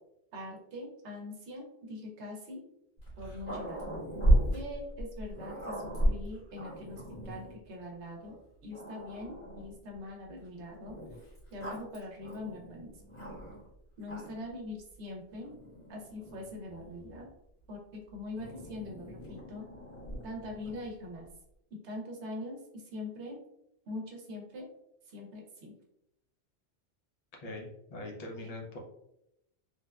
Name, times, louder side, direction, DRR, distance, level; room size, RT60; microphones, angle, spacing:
voice 1, 0.3-2.6 3.2-3.8 4.5-10.9 11.5-13.0 14.0-15.6 15.9-17.3 17.7-19.6 20.2-21.3 21.8-23.4 23.9-24.7 25.1-25.7 28.4-28.5, left 1 dB, 80° right, 0 dB, 1.0 m, -43 dB
Growling, 3.0-7.6 8.3-8.4 8.7-9.8 10.9-13.7 14.0-14.5 15.4-17.2 18.4-20.9, right 1 dB, 80° left, 1.6 m, -34 dB
voice 2, 27.4-28.8, left 2 dB, 45° left, 0 dB, 0.6 m, -42 dB
3.3 x 2.1 x 2.3 m, 0.82 s
omnidirectional pair, 1.2 m